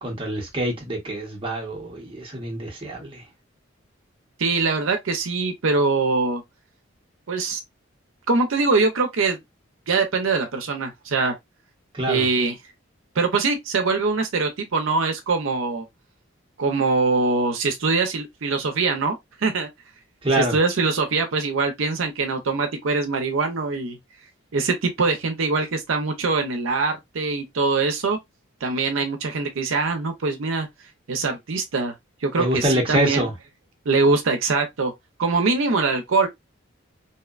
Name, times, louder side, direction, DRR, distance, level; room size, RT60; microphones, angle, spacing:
voice 1, 0.0-3.2 11.9-12.3 20.2-20.6 32.4-33.3, right 1 dB, 25° right, 0.8 m, -25 dB
voice 2, 4.4-6.4 7.3-7.6 8.3-9.4 9.9-11.3 12.1-12.6 13.2-15.8 16.6-19.7 20.4-24.0 24.5-28.2 28.6-30.7 31.1-31.9 32.2-33.3 33.9-34.9 35.2-36.3, right 3 dB, 75° right, 0.5 m, -23 dB
2.7 x 2.1 x 2.3 m
head